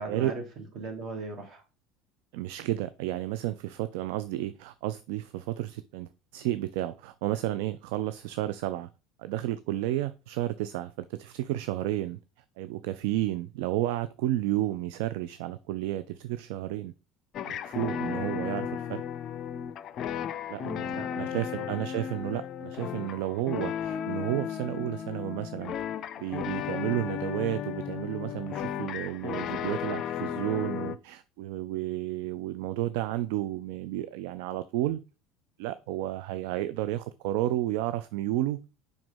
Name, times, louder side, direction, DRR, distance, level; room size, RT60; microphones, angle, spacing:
voice 1, 0.0-1.6 20.5-21.8, right 3 dB, 45° right, 2.3 m, -39 dB
voice 2, 2.3-8.9 9.2-12.2 12.6-16.9 17.4-19.0 20.5-20.6 21.1-25.7 26.2-35.0 35.6-38.7, right 14 dB, 60° right, 0.3 m, -32 dB
sound 1, 17.3-31.0, left 9 dB, 45° left, 0.4 m, -35 dB
5.2 x 4.8 x 5.4 m
figure-of-eight pair, 65°, 0 cm